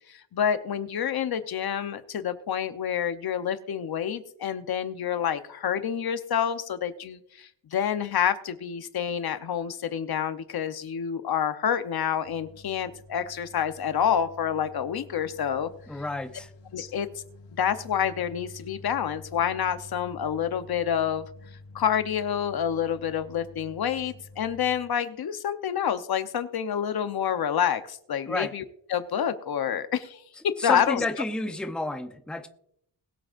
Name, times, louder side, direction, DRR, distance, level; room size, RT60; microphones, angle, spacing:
voice 1, 0.1-15.7 16.7-17.1 17.6-21.3 21.7-28.6 28.9-30.2 30.6-31.0, left 8 dB, 60° left, 9 dB, 0.9 m, -28 dB
sound 1, 12.2-24.8, left 2 dB, 90° left, 1.4 m, -49 dB
voice 2, 15.9-16.5 28.3-28.5 30.6-32.5, left 2 dB, ahead, 6 dB, 0.7 m, -31 dB
21.0 x 7.7 x 2.5 m, 0.70 s
wide cardioid pair, 140°, 43 cm